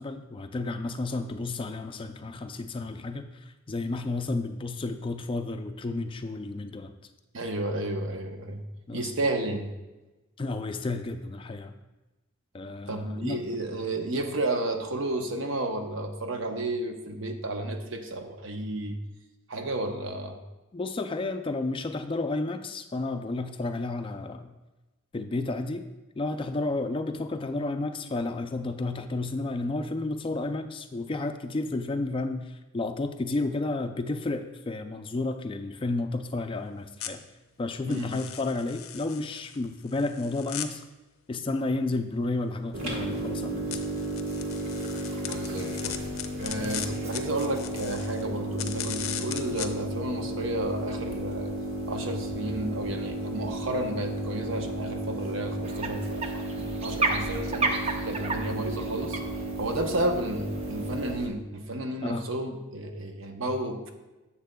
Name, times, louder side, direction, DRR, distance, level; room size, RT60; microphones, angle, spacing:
voice 1, 0.0-6.9 8.9-9.1 10.4-11.7 12.5-13.4 20.7-24.5 25.1-25.8 26.2-37.2 37.6-40.8 41.3-43.7 46.6-46.9 62.0-62.2, left 2 dB, 25° left, 8 dB, 0.4 m, -32 dB
voice 2, 7.3-8.6 8.9-9.7 12.9-19.0 19.5-20.4 37.9-38.1 45.1-46.0 46.3-51.5 51.9-57.7 58.0-59.2 59.6-63.9, right 1 dB, 65° right, 5 dB, 0.9 m, -32 dB
sound 1, 37.0-37.1 37.9-40.7 43.7-48.3 48.6-49.7, left 10 dB, 85° left, 0.6 m, -38 dB
sound 2, 42.7-61.3, right 1 dB, 85° right, 1.6 m, -34 dB
sound 3, 55.6-61.1, right 3 dB, 30° right, 0.6 m, -33 dB
10.0 x 7.3 x 2.2 m, 1.1 s
head